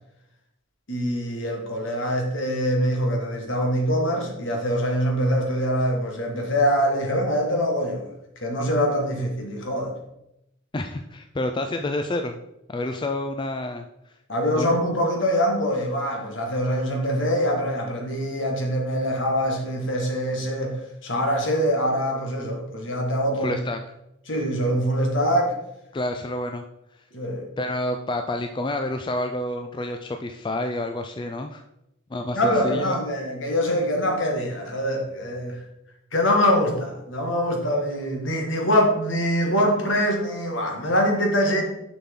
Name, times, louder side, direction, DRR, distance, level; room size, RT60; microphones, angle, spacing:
voice 1, 0.9-8.1 8.4-10.0 14.3-23.6 24.3-25.5 27.1-27.4 32.3-35.6 36.1-41.6, equal, 65° left, 1 dB, 1.7 m, -24 dB
voice 2, 10.7-12.4 12.7-14.1 14.5-14.7 23.4-23.8 25.9-26.6 27.6-31.6 32.1-33.0, left 1 dB, 25° left, 5 dB, 0.3 m, -29 dB
6.9 x 5.9 x 3.7 m, 0.85 s
head